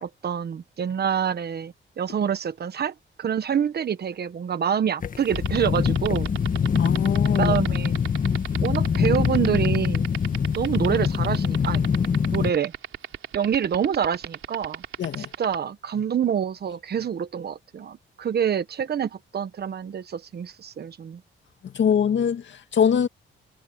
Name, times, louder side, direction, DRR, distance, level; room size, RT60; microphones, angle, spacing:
voice 1, 0.0-6.3 7.4-8.0 8.6-10.1 10.5-11.8 12.3-12.7 13.3-14.8 15.2-21.2, right 8 dB, 50° right, 1.2 m, -26 dB
sound 1, 5.0-12.5, left 6 dB, 40° left, 1.6 m, -23 dB
sound 2, 5.2-15.6, right 10 dB, 80° right, 3.2 m, -33 dB
voice 2, 6.8-7.6 15.0-15.3 21.6-23.1, left 8 dB, 65° left, 2.1 m, -23 dB
wide cardioid pair, 135°, 21 cm